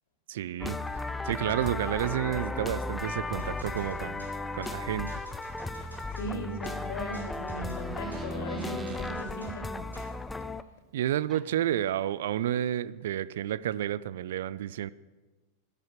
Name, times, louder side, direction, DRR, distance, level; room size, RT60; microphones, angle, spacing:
voice 1, 0.3-0.8 1.2-4.2 4.5-5.2 10.9-14.9, right 11 dB, 55° right, 19 dB, 0.5 m, -30 dB
sound 1, 0.6-10.6, left 2 dB, 10° left, 0.6 m, -35 dB
sound 2, 3.4-10.2, right 2 dB, 85° right, 4.0 m, -51 dB
voice 2, 6.1-9.7, right 1 dB, 55° left, 4 dB, 2.9 m, -37 dB
Door, 6.7-9.2 11.0-11.1 11.3-11.7, right 3 dB, 15° right, 1.6 m, -49 dB
13.0 x 11.5 x 7.4 m, 1.2 s
figure-of-eight pair, 90°, 0 cm